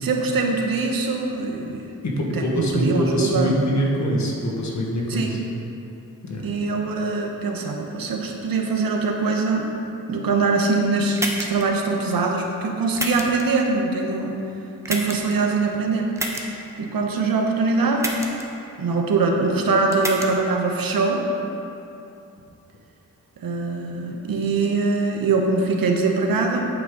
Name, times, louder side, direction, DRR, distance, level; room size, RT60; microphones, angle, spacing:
voice 1, 0.0-1.9 2.3-3.6 5.1-5.4 6.4-9.7 10.1-11.2 11.5-14.3 14.9-16.1 16.8-18.1 18.8-21.2 23.4-26.6, right 3 dB, 80° right, 2 dB, 1.1 m, -23 dB
voice 2, 2.0-5.4 6.2-6.5, equal, 55° left, -2 dB, 1.7 m, -24 dB
sound 1, 11.2-11.6 12.9-13.4 14.8-15.3 16.2-16.4 18.0-18.4 19.9-20.3, right 1 dB, 10° right, 1.0 m, -28 dB
9.1 x 8.4 x 3.9 m, 2.8 s
wide cardioid pair, 100°, 34 cm